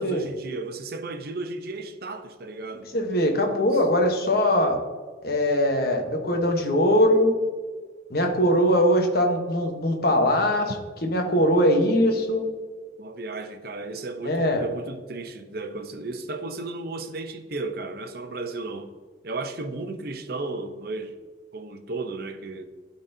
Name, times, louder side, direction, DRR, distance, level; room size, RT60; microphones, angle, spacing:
voice 1, 0.0-2.9 13.0-18.9 19.2-21.2 21.5-22.6, right 3 dB, 55° right, 0.7 m, -34 dB
voice 2, 2.9-4.8 5.2-7.4 8.1-10.7 11.0-12.4 14.2-14.6, equal, 55° left, 1.1 m, -21 dB
12.0 x 4.1 x 2.7 m
head